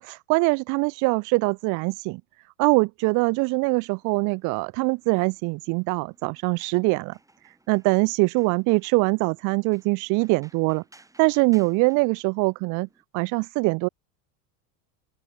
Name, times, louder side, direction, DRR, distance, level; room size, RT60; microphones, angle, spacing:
voice 1, 0.0-2.2 2.6-7.1 7.7-10.8 11.2-12.9 13.1-13.9, right 28 dB, 45° right, 0.4 m, -23 dB
sound 1, 3.0-13.0, right 2 dB, 5° right, 5.9 m, -60 dB
open air
supercardioid pair, 125°, 45 cm